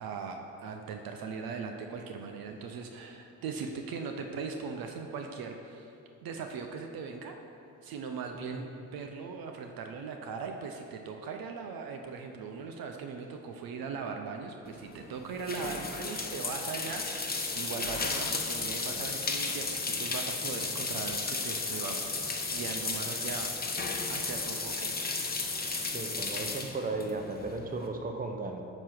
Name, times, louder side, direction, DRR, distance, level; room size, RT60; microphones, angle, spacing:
voice 1, 0.0-5.9 6.2-7.3 7.8-25.0, right 5 dB, 60° right, 4 dB, 0.7 m, -39 dB
voice 2, 8.3-8.7 25.9-28.6, right 3 dB, 20° right, 4 dB, 0.8 m, -36 dB
sound 1, 14.6-27.9, left 3 dB, 25° left, 1.0 m, -34 dB
8.9 x 3.0 x 5.9 m, 2.6 s
hypercardioid pair, 50°, 40 cm